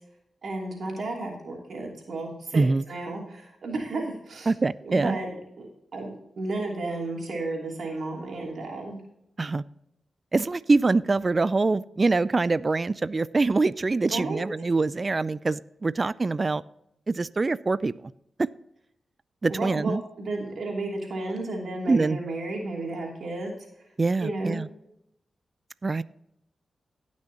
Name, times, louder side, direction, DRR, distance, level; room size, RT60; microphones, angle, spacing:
voice 1, 0.4-4.5 4.8-5.3 5.6-9.0 14.0-14.4 19.5-23.5 24.2-24.6, right 2 dB, 70° right, -1 dB, 3.0 m, -33 dB
voice 2, 2.5-2.8 4.5-5.2 9.4-9.6 10.3-16.6 17.1-18.1 18.4-18.5 19.4-20.0 21.9-22.2 24.0-24.7 25.8-26.0, right 3 dB, 40° right, 17 dB, 0.4 m, -24 dB
17.5 x 6.2 x 2.9 m, 0.77 s
cardioid pair, 55°, 0 cm